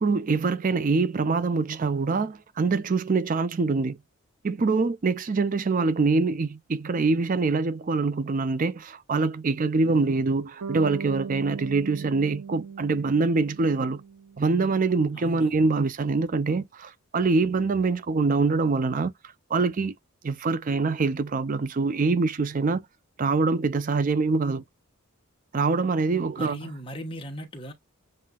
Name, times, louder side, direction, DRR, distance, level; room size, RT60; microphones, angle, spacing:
voice 1, 0.0-4.0 4.4-14.0 14.4-19.1 19.5-19.9 20.2-22.8 23.2-24.6 25.5-26.7, right 4 dB, 40° right, 0.4 m, -24 dB
voice 2, 9.8-10.2 15.1-15.6 26.3-27.7, equal, 25° left, 1.3 m, -39 dB
Bass guitar, 10.6-14.7, right 6 dB, 90° right, 0.5 m, -39 dB
7.4 x 2.7 x 2.3 m
head